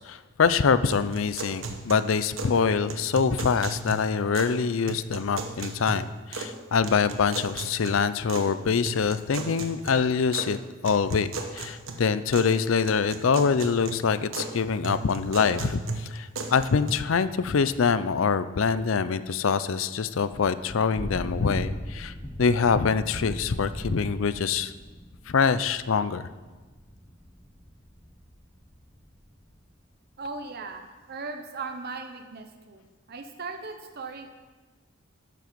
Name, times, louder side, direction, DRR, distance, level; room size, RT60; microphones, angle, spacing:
voice 1, 0.0-22.1 22.4-24.7 25.3-26.3, left 5 dB, 75° left, 14 dB, 0.5 m, -25 dB
sound 1, 0.9-2.6 2.9-4.6 4.9-6.6 6.8-8.5 8.9-10.5 10.9-12.5 12.9-14.5 14.8-16.9, right 3 dB, 75° right, 1.2 m, -36 dB
Thunder / Rain, 20.2-29.5, equal, 10° left, 0.9 m, -39 dB
voice 2, 30.2-34.3, right 4 dB, 50° right, 6 dB, 0.8 m, -38 dB
12.0 x 7.5 x 5.2 m, 1.3 s
head